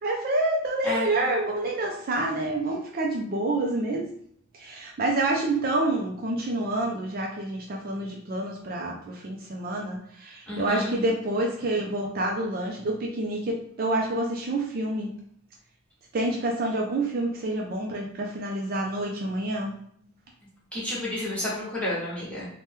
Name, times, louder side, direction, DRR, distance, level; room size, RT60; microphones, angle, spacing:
voice 1, 0.0-4.1 4.6-15.1 16.1-19.7, right 2 dB, 45° right, 0 dB, 0.4 m, -28 dB
voice 2, 10.5-10.9 20.7-22.5, left 1 dB, 5° left, -8 dB, 1.1 m, -30 dB
2.8 x 2.1 x 3.4 m, 0.67 s
head